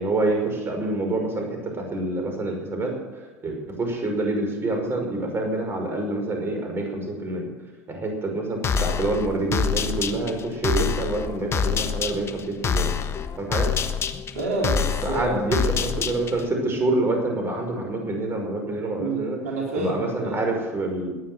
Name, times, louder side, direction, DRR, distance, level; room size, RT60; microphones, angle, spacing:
voice 1, 0.0-7.5 7.9-12.9 13.4-13.7 15.0-19.4 19.7-21.1, right 2 dB, 30° right, 2 dB, 5.6 m, -27 dB
sound 1, 8.6-16.5, left 6 dB, 35° left, 1.2 m, -26 dB
voice 2, 14.3-15.4 19.0-20.3, right 2 dB, 75° right, -2 dB, 3.9 m, -28 dB
18.0 x 9.6 x 8.1 m, 1.2 s
hypercardioid pair, 80°, 8 cm